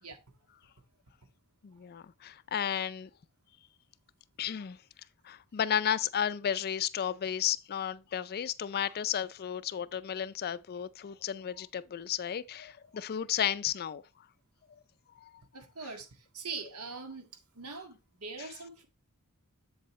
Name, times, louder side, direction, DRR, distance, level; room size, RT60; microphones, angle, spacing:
voice 1, 1.6-3.1 4.4-4.8 5.2-14.0 15.2-15.3, left 9 dB, 45° left, 0.4 m, -33 dB
voice 2, 15.5-17.3 17.5-18.9, right 4 dB, 80° right, 1.8 m, -42 dB
7.9 x 7.5 x 3.1 m
head